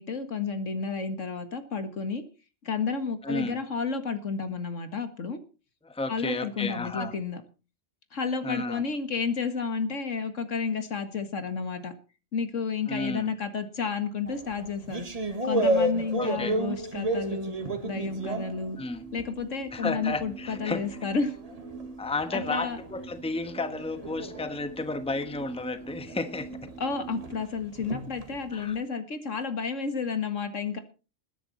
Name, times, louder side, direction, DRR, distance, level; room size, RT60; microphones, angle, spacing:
voice 1, 0.0-2.2 2.6-5.4 6.1-7.4 8.1-11.9 12.3-15.1 15.4-18.8 19.1-21.3 22.3-22.8 26.8-30.8, left 5 dB, 75° left, 8 dB, 2.1 m, -31 dB
voice 2, 3.2-3.6 5.8-7.1 8.4-8.8 12.9-13.3 16.2-16.6 18.8-19.1 19.7-21.1 22.0-26.5 28.5-28.8, left 3 dB, 5° left, 10 dB, 1.1 m, -32 dB
sound 1, 14.3-19.4 19.8-28.7, right 1 dB, 30° right, 1.7 m, -33 dB
sound 2, 17.8-27.5, right 4 dB, 80° right, 2.2 m, -44 dB
20.5 x 10.0 x 4.2 m, 0.34 s
omnidirectional pair, 1.3 m